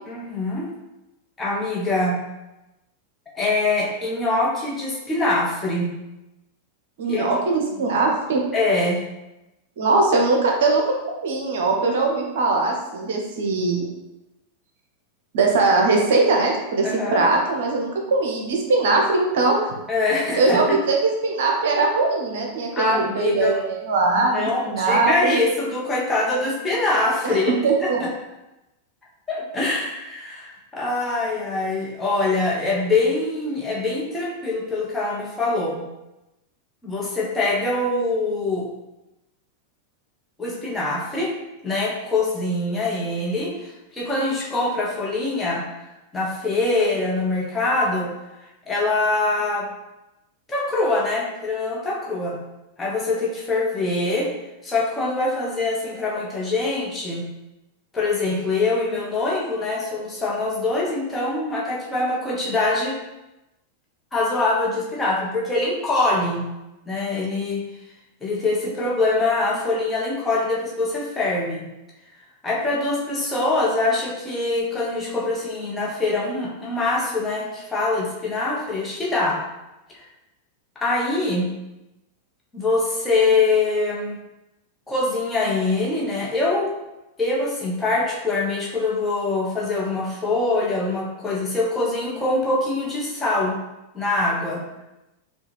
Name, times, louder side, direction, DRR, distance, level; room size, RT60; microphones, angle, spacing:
voice 1, 0.1-0.7 1.4-2.2 3.3-5.9 7.1-7.3 7.5-7.6 8.5-9.0 16.8-17.2 19.9-20.8 22.7-23.6 24.2-27.5 27.8-28.1 29.3-35.8 36.8-38.7 40.4-41.3 41.6-45.6 46.1-48.1 48.7-49.7 50.5-52.4 52.8-54.3 54.6-57.2 57.9-63.0 64.1-66.4 66.9-67.6 68.2-71.6 72.4-79.4 80.0-80.1 80.8-81.5 82.5-84.2 84.9-86.7 87.2-93.6 93.9-94.6, left 2 dB, 15° left, -5 dB, 1.0 m, -24 dB
voice 2, 7.0-8.4 9.8-10.8 11.2-13.9 15.3-19.7 20.4-21.0 21.2-25.4 27.2-28.0, right 3 dB, 55° right, 1 dB, 0.7 m, -21 dB
4.7 x 2.4 x 3.2 m, 0.99 s
figure-of-eight pair, 90°, 0 cm